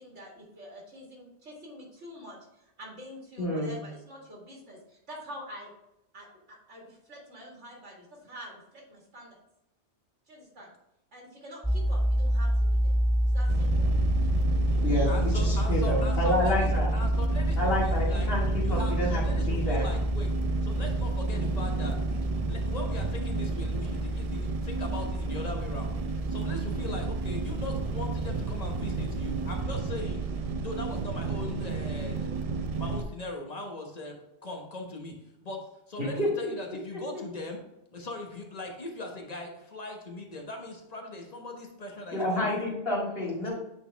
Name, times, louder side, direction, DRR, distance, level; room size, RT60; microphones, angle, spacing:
voice 1, 0.0-5.7 6.1-9.4 10.3-10.7 11.1-13.0 13.2-13.9, equal, 75° right, -3 dB, 2.2 m, -46 dB
voice 2, 3.4-3.7 14.8-16.9 17.6-19.2 19.5-19.9 36.2-36.3 36.9-37.0 42.1-43.5, left 1 dB, 55° left, -4 dB, 2.2 m, -29 dB
sound 1, 11.6-29.6, equal, 5° right, 0.7 m, -29 dB
sound 2, 13.5-33.0, right 4 dB, 50° right, 0.4 m, -33 dB
voice 3, 15.1-18.3 18.6-20.3 20.6-22.0 22.4-26.0 26.3-30.2 30.6-32.3 32.8-35.2 35.4-35.6 35.9-37.6 37.9-42.7 43.4-43.5, left 2 dB, 35° left, 1 dB, 1.2 m, -40 dB
8.5 x 4.2 x 3.4 m, 0.87 s
omnidirectional pair, 1.2 m